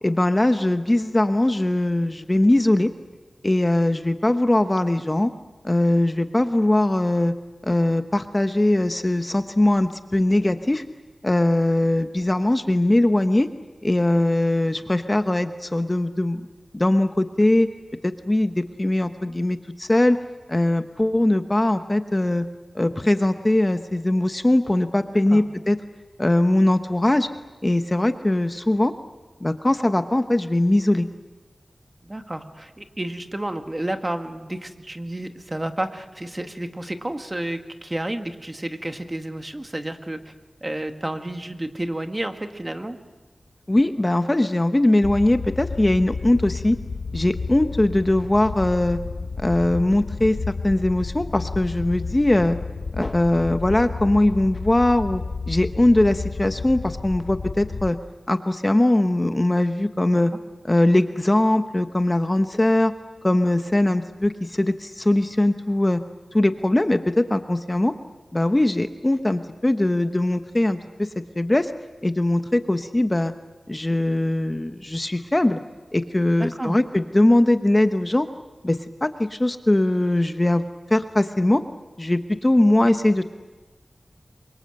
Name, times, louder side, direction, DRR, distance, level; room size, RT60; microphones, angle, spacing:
voice 1, 0.0-2.9 3.4-5.3 5.6-7.3 7.6-10.8 11.2-13.5 13.8-16.4 16.7-17.7 18.0-20.2 20.5-22.4 22.7-25.8 26.2-27.3 27.6-28.9 29.4-31.1 43.7-46.8 47.1-49.0 49.4-52.6 53.0-55.2 55.5-58.0 58.3-60.3 60.6-62.9 63.2-66.0 66.3-67.9 68.3-71.1 71.4-71.7 72.0-73.3 73.7-75.6 75.9-78.3 78.6-81.6 82.0-83.3, left 1 dB, 25° left, 8 dB, 1.1 m, -21 dB
voice 2, 25.0-25.4 32.0-40.3 40.6-43.0 60.1-60.2 76.4-76.8, right 1 dB, 25° right, 6 dB, 1.8 m, -31 dB
sound 1, 45.0-57.9, left 4 dB, 85° left, 0.8 m, -32 dB
27.5 x 24.0 x 7.8 m, 1.2 s
wide cardioid pair, 80°, 0 cm